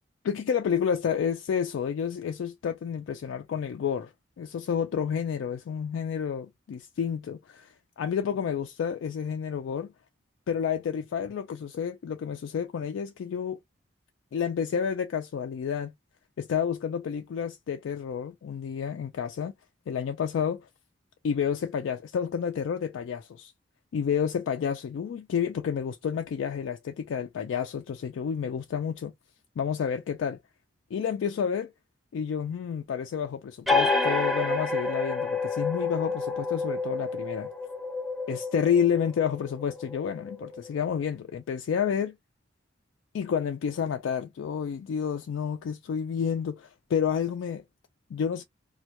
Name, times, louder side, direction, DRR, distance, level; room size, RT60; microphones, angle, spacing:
voice 1, 0.2-4.1 4.4-9.9 10.5-13.6 14.3-15.9 16.4-19.5 19.9-20.7 21.2-23.5 23.9-29.1 29.6-30.4 30.9-31.7 32.1-37.5 38.3-42.2 43.1-47.6 48.1-48.4, left 7 dB, 80° left, 0.3 m, -30 dB
sound 1, 33.7-40.9, left 3 dB, ahead, 0.4 m, -29 dB
2.2 x 2.1 x 2.8 m
head